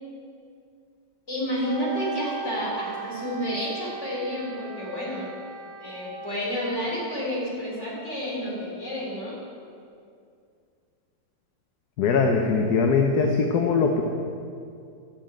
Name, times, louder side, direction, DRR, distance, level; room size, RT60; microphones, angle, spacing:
voice 1, 1.3-5.3 5.8-9.4, equal, 40° left, -5 dB, 3.8 m, -30 dB
Wind instrument woodwind instrument, 1.6-6.4, right 6 dB, 10° left, 3.9 m, -37 dB
voice 2, 12.0-14.0, left 4 dB, 65° left, 3 dB, 1.3 m, -21 dB
11.5 x 7.0 x 8.9 m, 2.4 s
omnidirectional pair, 1.9 m